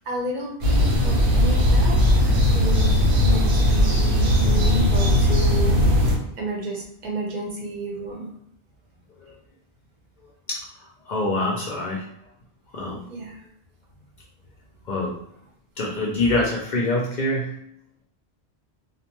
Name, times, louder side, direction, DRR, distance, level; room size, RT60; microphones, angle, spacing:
voice 1, 0.1-2.9 3.2-5.8 6.4-8.3 13.1-13.4 15.4-15.5, right 1 dB, 50° right, -1 dB, 0.7 m, -31 dB
sound 1, 0.6-6.2, left 1 dB, 80° right, 1.0 m, -18 dB
voice 2, 11.1-12.0 12.7-13.0 14.9-15.1 15.8-17.5, left 2 dB, 55° left, -3 dB, 0.5 m, -24 dB
2.4 x 2.2 x 2.9 m, 0.74 s
omnidirectional pair, 1.1 m